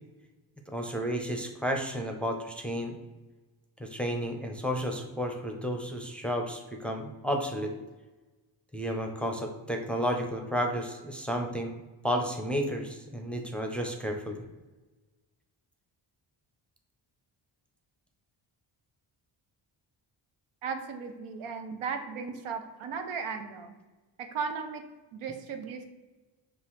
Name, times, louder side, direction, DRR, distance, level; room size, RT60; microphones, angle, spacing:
voice 1, 0.7-3.0 3.8-7.7 8.7-11.8 12.0-14.4, equal, ahead, 2 dB, 0.6 m, -32 dB
voice 2, 20.6-23.7 24.2-24.8 25.1-25.8, right 5 dB, 80° right, 6 dB, 0.7 m, -36 dB
5.4 x 2.5 x 3.0 m, 1.2 s
cardioid pair, 60°, 48 cm